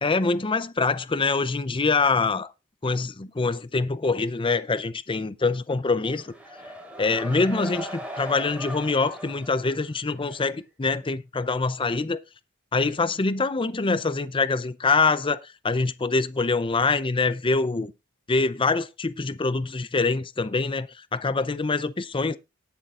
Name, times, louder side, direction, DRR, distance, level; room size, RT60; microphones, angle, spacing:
voice 1, 0.0-2.5 2.8-6.3 7.0-12.2 12.7-17.9 18.3-22.4, left 3 dB, 25° left, 0.6 m, -25 dB
sound 1, 6.0-10.5, equal, 5° right, 3.6 m, -39 dB
19.0 x 7.1 x 2.5 m
head